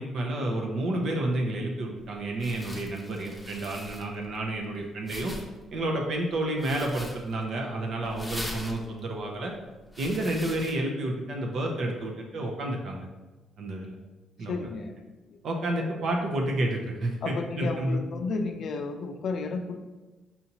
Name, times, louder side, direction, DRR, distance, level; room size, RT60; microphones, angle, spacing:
voice 1, 0.0-5.3 5.7-9.5 10.0-13.1 13.6-14.0 14.4-14.7 15.4-18.1, right 1 dB, 70° right, 1 dB, 0.6 m, -30 dB
sound 1, 2.0-10.7, left 1 dB, ahead, 0.8 m, -43 dB
voice 2, 14.5-14.9 15.3-15.4 15.8-15.9 17.2-19.8, left 4 dB, 60° left, 6 dB, 0.4 m, -32 dB
5.6 x 2.7 x 2.8 m, 1.2 s
cardioid pair, 90°, 0 cm